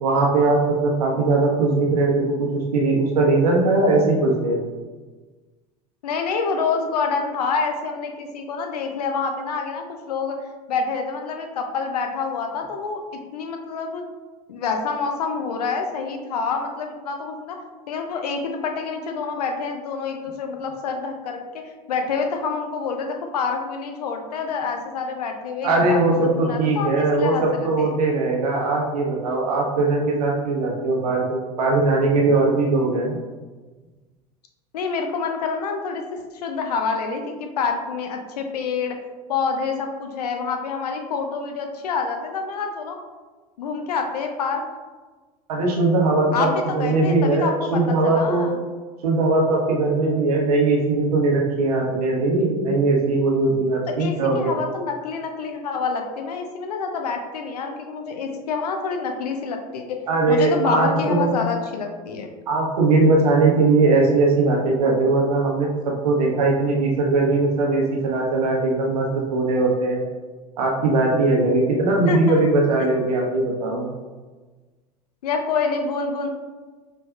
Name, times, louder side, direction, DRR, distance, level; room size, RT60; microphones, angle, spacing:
voice 1, 0.0-4.6 25.6-33.2 45.5-48.5 49.0-54.5 60.1-61.3 62.5-70.0 70.6-73.9, right 3 dB, 75° right, -1 dB, 0.9 m, -20 dB
voice 2, 6.0-10.4 10.7-13.0 13.3-14.0 14.5-17.6 17.9-27.9 34.7-39.0 39.3-43.0 43.6-44.6 46.3-48.6 54.0-59.8 60.3-62.3 72.1-72.5 75.2-76.3, left 5 dB, 75° left, 4 dB, 0.5 m, -27 dB
4.9 x 3.2 x 2.3 m, 1.3 s
figure-of-eight pair, 75°, 20 cm